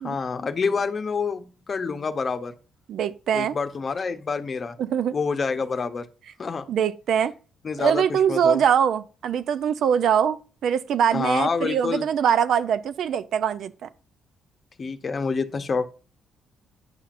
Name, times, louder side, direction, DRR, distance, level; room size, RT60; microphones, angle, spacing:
voice 1, 0.0-2.5 3.3-4.8 5.1-6.1 6.4-6.6 7.6-8.6 11.1-12.0 14.8-15.9, left 5 dB, 40° left, 0.8 m, -27 dB
voice 2, 2.9-3.6 4.8-5.1 6.7-7.3 7.8-10.4 10.6-13.9, right 8 dB, 70° right, 0.5 m, -23 dB
9.6 x 5.8 x 2.5 m
cardioid pair, 90°, 0 cm